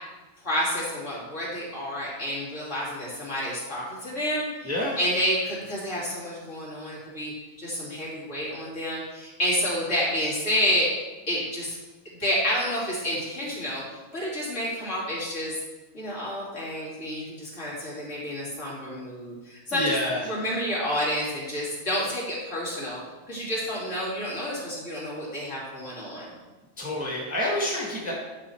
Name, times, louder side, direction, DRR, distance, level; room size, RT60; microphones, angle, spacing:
voice 1, 0.4-4.7 5.0-7.3 7.6-10.9 11.3-11.8 12.2-13.8 14.1-15.6 15.9-20.0 20.2-23.0 23.3-26.3, equal, 55° left, -7 dB, 3.3 m, -29 dB
voice 2, 4.6-5.0 19.7-20.2 26.8-28.1, left 1 dB, 5° right, -4 dB, 1.5 m, -28 dB
10.5 x 5.9 x 4.6 m, 1.2 s
omnidirectional pair, 1.6 m